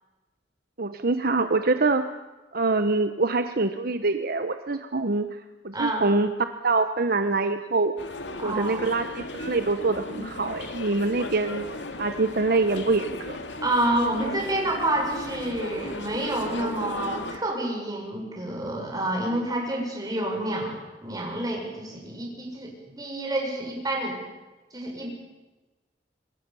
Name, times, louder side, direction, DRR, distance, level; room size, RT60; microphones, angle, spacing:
voice 1, 0.8-2.0 2.5-6.3 6.6-7.9 8.4-11.7 12.0-13.4, right 3 dB, 55° right, 8 dB, 1.1 m, -25 dB
voice 2, 5.7-6.0 8.4-8.9 13.6-24.2 24.7-25.1, right 1 dB, 20° right, 0 dB, 7.2 m, -28 dB
sound 1, 8.0-17.4, left 2 dB, 80° left, 2.5 m, -37 dB
26.5 x 22.0 x 7.0 m, 1.2 s
head